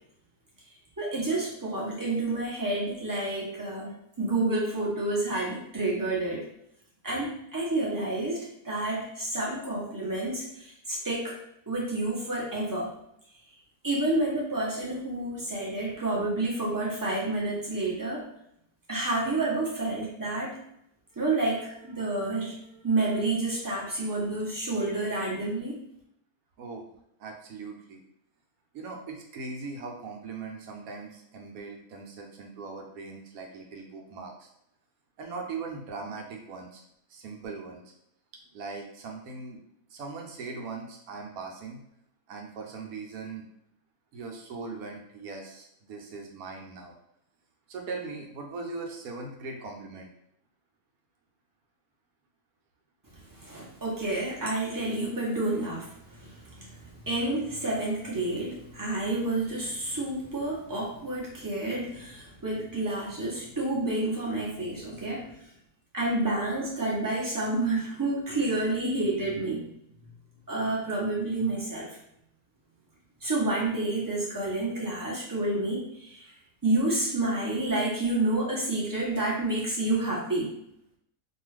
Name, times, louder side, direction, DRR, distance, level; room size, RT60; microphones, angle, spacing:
voice 1, 1.0-6.4 7.0-8.4 8.6-10.4 10.9-11.3 11.7-12.9 13.8-18.2 18.9-20.6 21.2-22.6 22.8-25.8 53.4-55.9 56.2-56.7 57.0-65.3 65.9-69.7 70.5-71.9 73.2-76.2 76.6-80.5, right 2 dB, 25° right, -6 dB, 0.4 m, -29 dB
voice 2, 27.2-28.0 28.7-34.5 35.2-36.8 37.1-37.9 38.5-39.6 39.9-41.8 42.3-43.5 44.1-46.9 47.7-50.1, right 4 dB, 75° right, 2 dB, 1.0 m, -40 dB
2.6 x 2.3 x 3.2 m, 0.77 s
omnidirectional pair, 1.6 m